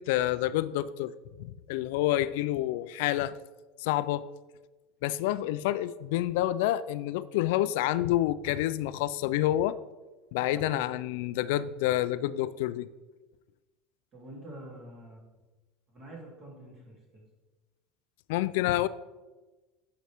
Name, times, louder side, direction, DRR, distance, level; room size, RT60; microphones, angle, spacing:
voice 1, 0.0-3.4 3.8-4.3 5.0-9.8 10.3-12.9 18.3-18.9, left 14 dB, 75° left, 15 dB, 0.3 m, -28 dB
voice 2, 10.5-10.9 14.1-15.2 15.9-17.2, right 1 dB, 30° right, -3 dB, 2.9 m, -46 dB
8.9 x 6.8 x 3.5 m, 1.2 s
cardioid pair, 160°, 0 cm